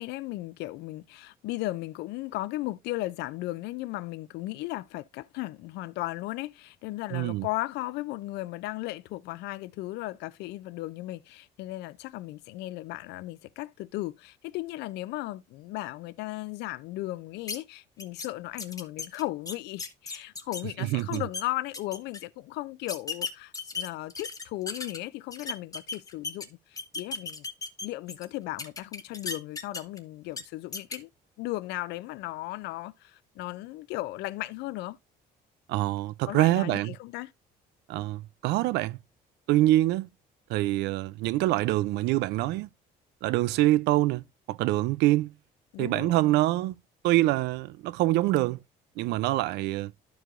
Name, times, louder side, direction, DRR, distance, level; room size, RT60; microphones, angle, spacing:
voice 1, 0.0-27.5 27.8-31.1 31.4-35.0 36.3-37.3 45.7-46.2, left 18 dB, 85° left, 0.5 m, -36 dB
voice 2, 7.1-7.5 20.8-21.2 35.7-37.0 37.9-39.0 39.5-40.1 40.5-42.7 43.2-45.3 45.8-46.8 47.0-48.6 49.0-49.9, right 16 dB, 85° right, 0.5 m, -25 dB
sound 1, 17.5-17.6 18.0-18.3 18.6-20.6 21.0-21.4 21.7-22.2 22.9-25.0 25.3-26.5 26.8-28.2 28.6-30.0 30.3-30.4 30.7-31.0, left 4 dB, 20° left, 0.9 m, -35 dB
12.5 x 4.7 x 2.5 m
cardioid pair, 110°, 17 cm